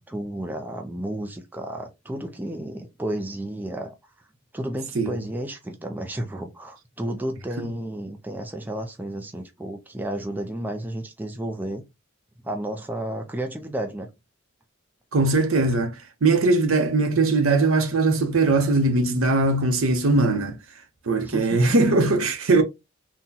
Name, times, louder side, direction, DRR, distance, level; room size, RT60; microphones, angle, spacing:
voice 1, 0.1-3.9 4.5-11.8 12.4-14.1 21.3-21.8, right 1 dB, 10° right, 0.4 m, -32 dB
voice 2, 15.1-20.6 21.0-22.6, right 3 dB, 80° right, 0.7 m, -20 dB
3.8 x 2.2 x 2.7 m
head